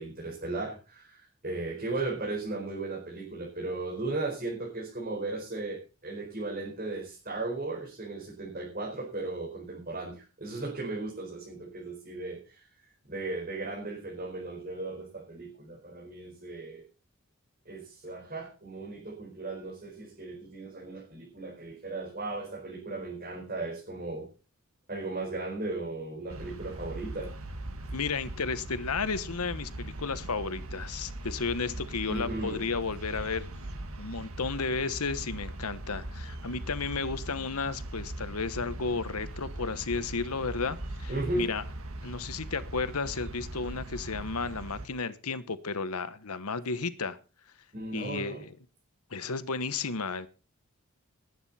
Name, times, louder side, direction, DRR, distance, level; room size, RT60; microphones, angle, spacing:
voice 1, 0.0-12.7 13.1-16.8 17.6-24.3 24.9-27.3 32.1-32.7 41.1-41.5 47.7-48.4, right 2 dB, 40° right, -3 dB, 4.8 m, -36 dB
sound 1, 26.3-44.9, right 1 dB, 70° right, 1.8 m, -40 dB
voice 2, 27.9-33.4 34.0-41.6 42.0-47.2 47.9-48.5 49.1-50.3, left 4 dB, 85° left, 13 dB, 1.2 m, -33 dB
19.5 x 9.5 x 4.3 m, 0.34 s
head